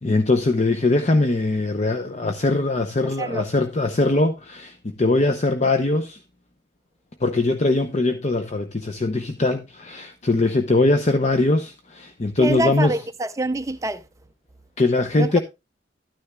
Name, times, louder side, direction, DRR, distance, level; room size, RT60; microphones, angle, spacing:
voice 1, 0.0-6.2 7.2-12.9 14.8-15.4, left 2 dB, 40° left, 0.7 m, -21 dB
voice 2, 12.4-14.0 15.2-15.3, right 2 dB, 15° right, 0.5 m, -26 dB
12.5 x 9.8 x 2.3 m
head